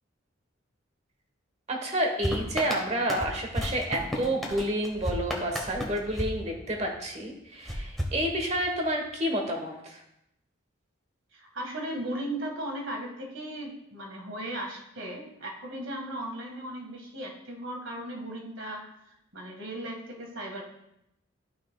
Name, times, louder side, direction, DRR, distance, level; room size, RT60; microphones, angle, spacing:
voice 1, 1.7-10.0, right 1 dB, 35° right, 3 dB, 1.2 m, -29 dB
sound 1, 2.2-7.1 7.6-8.9, equal, ahead, 1.1 m, -34 dB
voice 2, 11.3-20.6, right 1 dB, 70° right, 1 dB, 1.8 m, -37 dB
12.5 x 5.9 x 2.3 m, 0.80 s
head